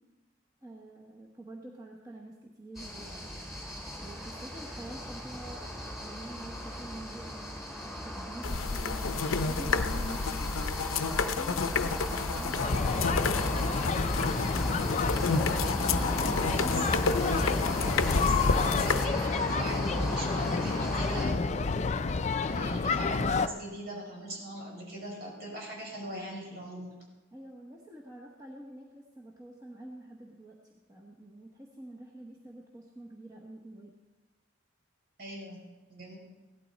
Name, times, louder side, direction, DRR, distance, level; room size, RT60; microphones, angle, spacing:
voice 1, 0.6-3.3 3.9-13.9 27.3-33.9, right 1 dB, 15° right, -2 dB, 1.1 m, -47 dB
sound 1, 2.8-21.3, equal, ahead, 3.5 m, -36 dB
sound 2, 8.4-19.1, left 4 dB, 85° left, 0.6 m, -30 dB
sound 3, 12.6-23.5, left 4 dB, 35° left, 0.4 m, -30 dB
voice 2, 16.0-21.7 22.4-26.9 35.2-36.2, right 1 dB, 55° right, -3 dB, 5.5 m, -41 dB
16.5 x 12.0 x 4.1 m, 1.2 s
head